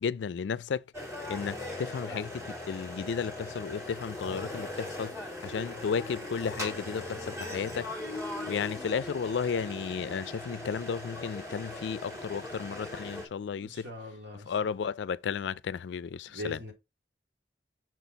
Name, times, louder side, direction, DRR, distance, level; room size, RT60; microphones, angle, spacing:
voice 1, 0.0-0.8 1.3-7.9 8.5-13.9 14.3-16.6, left 6 dB, 85° left, 0.4 m, -33 dB
sound 1, 0.9-13.3, left 1 dB, 15° right, 2.3 m, -39 dB
voice 2, 13.6-14.5 16.3-16.7, left 1 dB, 75° right, 2.7 m, -41 dB
6.2 x 4.3 x 4.0 m
head